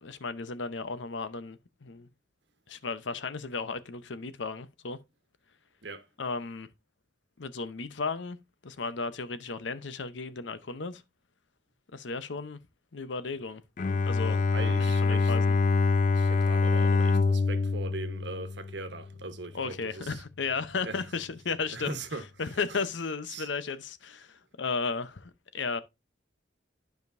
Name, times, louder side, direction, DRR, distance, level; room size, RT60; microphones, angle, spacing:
voice 1, 0.0-2.1 2.7-5.0 6.2-6.7 7.4-8.4 8.6-11.0 11.9-12.6 12.9-13.6 14.1-14.4 14.8-15.6 19.5-22.0 22.4-25.8, left 4 dB, 80° left, 0.8 m, -34 dB
Bowed string instrument, 13.8-19.0, left 4 dB, 45° left, 0.4 m, -25 dB
voice 2, 14.3-15.3 16.1-20.2 20.8-21.0 21.7-22.2 22.7-22.8 23.3-23.5, right 3 dB, 70° right, 1.2 m, -40 dB
12.0 x 5.1 x 2.6 m
head